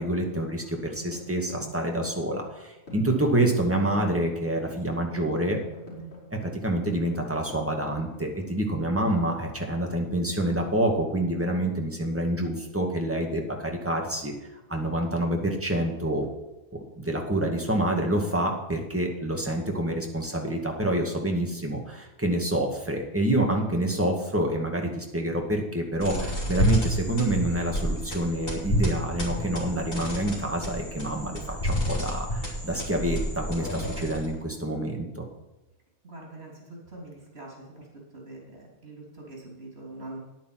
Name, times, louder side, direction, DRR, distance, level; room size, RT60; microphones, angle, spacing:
voice 1, 0.0-5.6 6.4-14.3 14.7-16.3 16.7-35.2, right 1 dB, 10° right, 1 dB, 2.1 m, -27 dB
sound 1, 0.6-8.6, right 1 dB, 80° left, 4.0 m, -44 dB
sound 2, 26.0-34.4, equal, 60° left, 3.2 m, -29 dB
voice 2, 36.0-37.9 38.1-40.2, right 2 dB, 75° right, -3 dB, 3.8 m, -43 dB
10.5 x 9.2 x 6.0 m, 1.0 s
omnidirectional pair, 1.1 m